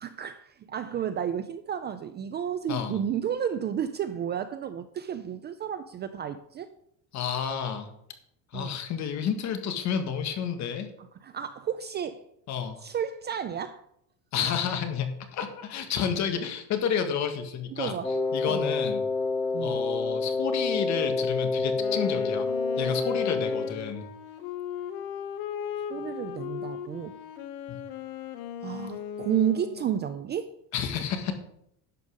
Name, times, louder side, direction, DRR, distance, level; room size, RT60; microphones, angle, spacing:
voice 1, 0.0-6.7 8.5-8.8 11.0-12.2 12.8-13.8 14.4-14.6 17.7-18.1 18.5-18.7 19.5-19.8 25.9-27.2 28.6-30.5, right 9 dB, 25° right, 0.4 m, -32 dB
voice 2, 7.1-7.9 8.5-10.9 12.5-12.8 14.3-17.9 18.3-19.0 19.6-22.5 22.8-24.1 30.7-31.3, left 7 dB, 45° left, 1.6 m, -30 dB
Wind instrument woodwind instrument, 18.0-23.8, left 3 dB, 10° left, 0.7 m, -28 dB
Wind instrument woodwind instrument 2, 21.7-30.1, left 9 dB, 85° left, 1.2 m, -37 dB
11.0 x 5.4 x 6.5 m
cardioid pair, 150°, 39 cm